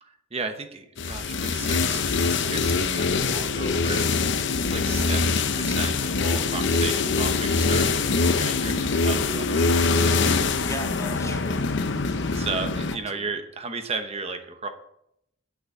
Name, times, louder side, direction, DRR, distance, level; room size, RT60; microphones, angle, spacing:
voice 1, 0.0-4.1 4.6-9.6 12.3-14.7, right 4 dB, 30° right, 6 dB, 1.0 m, -35 dB
sound 1, 1.0-13.0, left 4 dB, 60° left, 0.8 m, -24 dB
voice 2, 10.6-12.5 13.1-13.3, equal, 15° left, 6 dB, 0.8 m, -39 dB
8.7 x 6.2 x 8.2 m, 0.77 s
head